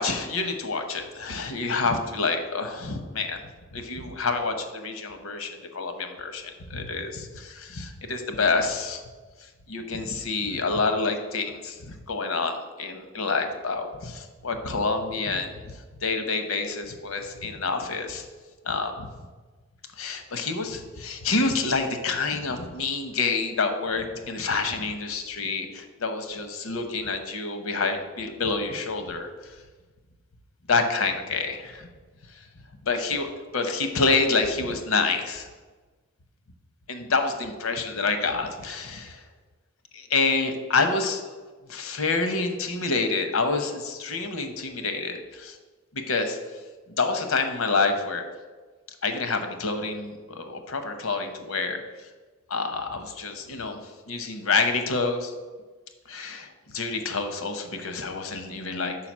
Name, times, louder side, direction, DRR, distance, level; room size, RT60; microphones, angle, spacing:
voice 1, 0.0-3.4 3.7-9.0 9.7-18.2 18.6-19.1 20.0-29.3 30.7-31.9 32.8-35.5 36.9-39.2 39.9-41.2 41.7-45.6 45.9-46.4 47.0-48.2 49.0-51.8 52.5-53.8 54.1-55.3 56.1-59.0, left 4 dB, 80° left, 7 dB, 0.9 m, -27 dB
5.8 x 4.9 x 6.1 m, 1.3 s
head